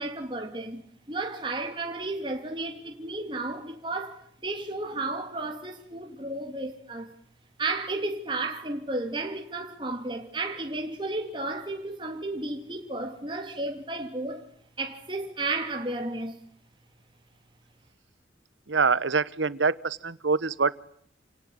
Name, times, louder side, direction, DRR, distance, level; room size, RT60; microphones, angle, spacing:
voice 1, 0.0-7.1 7.6-14.5 14.8-16.4, right 2 dB, 25° right, 2.8 m, -33 dB
voice 2, 18.7-20.8, right 4 dB, 90° right, 1.1 m, -25 dB
28.5 x 18.5 x 9.8 m
head